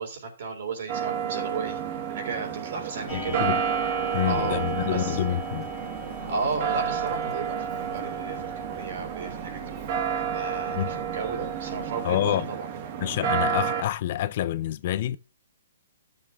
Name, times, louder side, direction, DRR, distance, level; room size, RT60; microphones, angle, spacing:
voice 1, 0.0-1.8 2.1-3.4 4.2-4.6 4.9-5.2 6.3-9.6 9.9-12.7, right 4 dB, 55° right, 3.5 m, -34 dB
sound 1, 0.9-13.8, right 8 dB, 40° right, 1.2 m, -30 dB
voice 2, 3.1-3.6 4.1-5.7 10.7-10.9 12.0-12.5 13.0-15.2, left 12 dB, 45° left, 0.4 m, -27 dB
Clock, 3.1-12.0, left 3 dB, 15° left, 2.3 m, -42 dB
13.0 x 7.1 x 2.3 m
hypercardioid pair, 150°, 0 cm